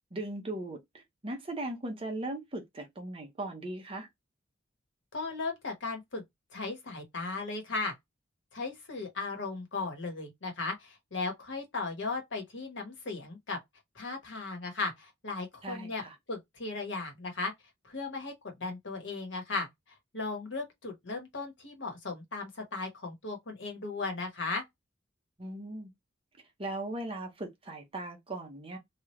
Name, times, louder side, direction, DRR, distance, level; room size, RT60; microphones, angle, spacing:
voice 1, 0.1-4.1 15.6-16.2 25.4-25.9 26.6-28.8, right 2 dB, 25° right, 0.8 m, -38 dB
voice 2, 5.1-6.2 6.5-7.9 8.5-13.6 13.9-17.5 17.8-19.7 20.1-24.6, left 3 dB, 60° left, 1.2 m, -36 dB
3.1 x 2.4 x 3.0 m
head